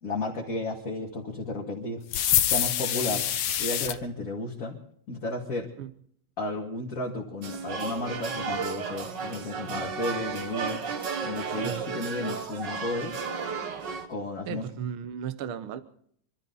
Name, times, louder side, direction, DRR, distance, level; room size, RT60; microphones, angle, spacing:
voice 1, 0.0-2.0 2.4-3.3 3.6-4.8 5.1-5.7 6.4-10.8 11.2-13.2 14.1-14.7, left 2 dB, 30° left, -2 dB, 2.1 m, -33 dB
sound 1, 2.1-4.0, left 11 dB, 70° left, 1.3 m, -25 dB
sound 2, 7.4-14.1, right 5 dB, 45° right, 1.6 m, -33 dB
voice 2, 14.5-15.8, right 8 dB, 65° right, 10 dB, 1.3 m, -35 dB
26.0 x 13.0 x 4.0 m, 0.63 s
omnidirectional pair, 3.3 m